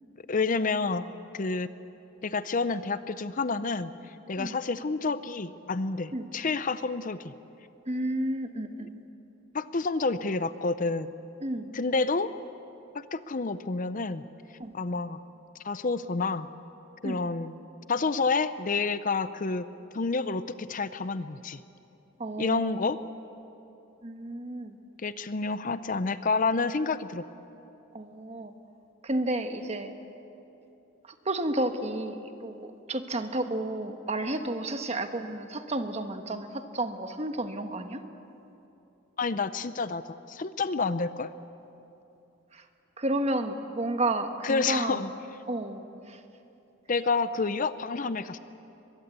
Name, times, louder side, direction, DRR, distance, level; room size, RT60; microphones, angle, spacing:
voice 1, 0.3-1.0 1.3-1.7 2.2-3.9 4.3-7.3 8.8-8.9 9.5-11.1 11.7-12.3 12.9-14.2 14.7-15.2 15.6-16.5 17.0-17.6 17.9-19.7 19.9-21.6 22.4-23.0 25.0-27.2 39.2-41.3 44.4-45.1 46.9-48.4, left 4 dB, 40° left, 13 dB, 0.6 m, -29 dB
voice 2, 7.9-8.9 11.4-11.7 14.6-14.7 17.0-17.2 22.2-22.8 24.0-24.8 27.9-28.5 29.0-29.9 31.2-38.0 42.5-42.6 43.0-45.0 45.5-46.2, right 1 dB, 35° right, 7 dB, 1.3 m, -31 dB
23.0 x 22.0 x 8.3 m, 2.9 s
head